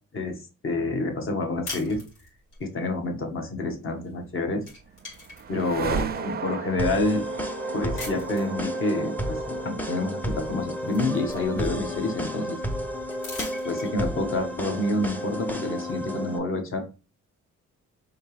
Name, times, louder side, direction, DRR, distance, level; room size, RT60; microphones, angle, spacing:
voice 1, 0.1-2.0 2.6-4.7 5.5-7.2 7.7-12.6 13.6-16.8, left 2 dB, 45° left, 4 dB, 1.2 m, -28 dB
wooden sticks or firewood, 1.6-2.6 4.0-4.3 4.6-6.2 6.8-6.9 7.9-8.6 10.0-10.1 10.5-12.0 13.1-14.2, left 3 dB, 80° left, 2.3 m, -41 dB
sound 1, 4.3-14.4, right 7 dB, 35° right, 0.5 m, -37 dB
sound 2, 6.8-16.4, equal, 5° left, 0.7 m, -32 dB
4.3 x 2.9 x 3.3 m, 0.32 s
cardioid pair, 90°, 30 cm